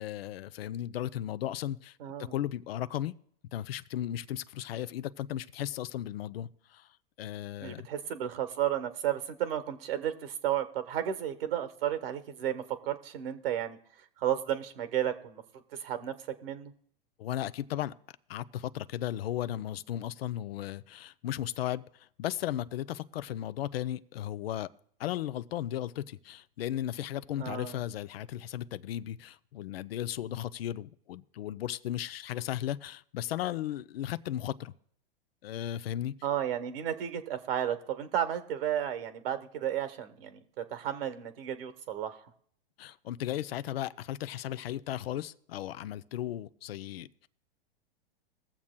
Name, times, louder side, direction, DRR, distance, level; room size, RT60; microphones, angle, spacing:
voice 1, 0.0-3.1 3.5-6.9 7.2-7.9 17.2-17.9 18.3-24.7 25.0-34.7 35.4-36.1 42.8-47.3, left 12 dB, 80° left, 15 dB, 0.5 m, -36 dB
voice 2, 2.0-2.3 7.6-13.8 14.2-15.4 15.8-16.1 16.4-16.7 27.4-27.8 36.2-42.2, right 10 dB, 70° right, 10 dB, 1.2 m, -33 dB
22.0 x 7.3 x 2.2 m, 0.65 s
hypercardioid pair, 125°, 30 cm